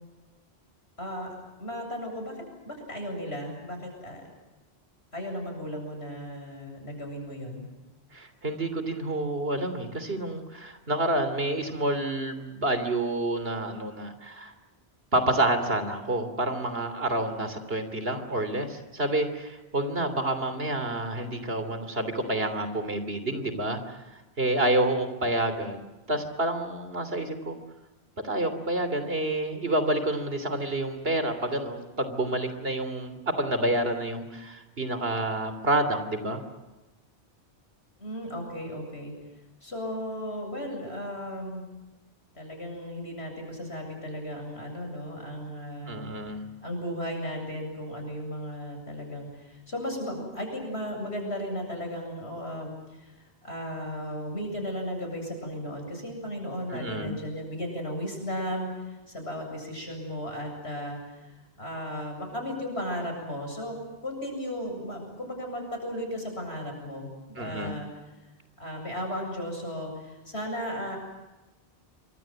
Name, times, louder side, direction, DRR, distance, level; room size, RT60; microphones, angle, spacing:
voice 1, 1.0-4.2 5.1-7.7 38.0-39.1 39.6-41.7 42.3-46.2 46.6-67.9 68.6-71.0, equal, 80° left, 3 dB, 8.1 m, -35 dB
voice 2, 8.1-14.5 15.1-24.0 24.4-25.8 26.1-27.6 28.2-36.4 45.9-46.5 56.7-57.2 67.4-67.8, right 1 dB, 65° right, 10 dB, 3.5 m, -28 dB
27.5 x 24.5 x 7.7 m, 1.1 s
omnidirectional pair, 1.1 m